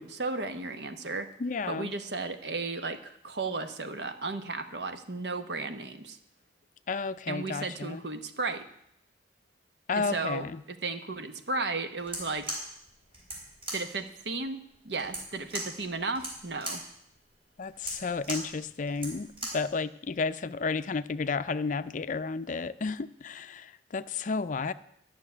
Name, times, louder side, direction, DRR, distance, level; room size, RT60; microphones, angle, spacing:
voice 1, 0.0-1.3 1.7-6.2 7.3-8.6 9.9-12.5 13.7-14.6 14.8-16.8, right 3 dB, 70° right, 8 dB, 1.1 m, -34 dB
voice 2, 1.4-1.9 6.9-8.0 9.9-10.6 17.6-24.7, left 4 dB, 45° left, 13 dB, 0.4 m, -32 dB
sound 1, 12.0-19.7, right 1 dB, 30° right, 3.8 m, -39 dB
12.0 x 6.5 x 9.4 m, 0.75 s
head